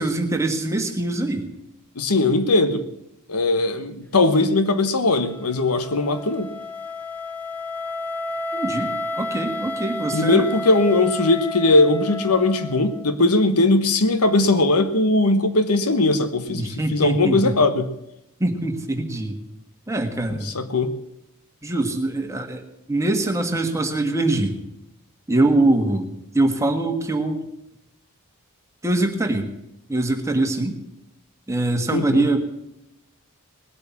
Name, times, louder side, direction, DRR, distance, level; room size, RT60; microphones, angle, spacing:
voice 1, 0.0-1.5 8.5-8.9 9.2-10.5 16.5-17.5 18.4-19.4 19.9-20.5 21.6-22.6 22.9-24.6 25.3-26.1 26.3-27.4 28.8-29.5 29.9-30.8 31.5-32.4, right 2 dB, 15° right, 4 dB, 1.7 m, -23 dB
voice 2, 2.0-2.8 3.3-6.5 10.1-17.9 20.4-20.9 31.9-32.2, left 2 dB, 85° left, 11 dB, 1.2 m, -19 dB
Wind instrument woodwind instrument, 5.1-13.1, left 2 dB, 10° left, 1.1 m, -31 dB
19.5 x 8.4 x 7.2 m, 0.83 s
head